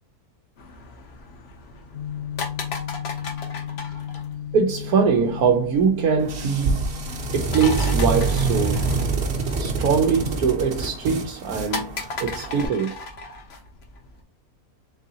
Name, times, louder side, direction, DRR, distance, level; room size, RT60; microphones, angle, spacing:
sound 1, 0.6-14.2, left 3 dB, 55° left, 0.9 m, -37 dB
sound 2, 1.9-11.0, left 9 dB, 70° left, 1.0 m, -36 dB
voice 1, 4.5-6.9 7.3-9.0 9.6-13.0, right 6 dB, 80° right, 1.1 m, -22 dB
sound 3, 6.2-12.6, right 3 dB, 50° right, 1.1 m, -26 dB
4.0 x 3.7 x 2.8 m
omnidirectional pair, 1.5 m